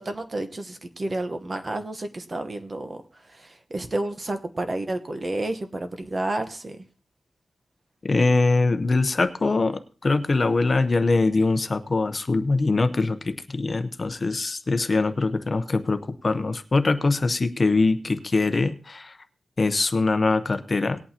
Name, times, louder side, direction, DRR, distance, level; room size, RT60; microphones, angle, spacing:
voice 1, 0.0-3.0 3.2-6.8, right 2 dB, 35° right, 8 dB, 1.1 m, -30 dB
voice 2, 8.1-19.2 19.6-21.0, left 3 dB, 40° left, 9 dB, 0.8 m, -23 dB
19.0 x 8.6 x 2.9 m, 0.38 s
wide cardioid pair, 95°, 0 cm